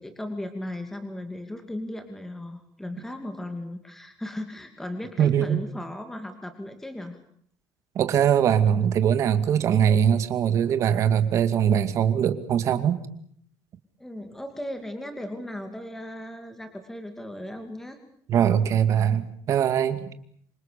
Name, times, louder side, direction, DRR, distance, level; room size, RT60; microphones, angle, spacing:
voice 1, 0.0-7.2 14.0-18.0, left 1 dB, 5° left, 6 dB, 2.6 m, -36 dB
voice 2, 5.2-5.6 8.0-13.0 18.3-20.0, right 9 dB, 45° right, 11 dB, 2.3 m, -22 dB
27.0 x 25.5 x 6.9 m, 0.63 s
cardioid pair, 170°, 7 cm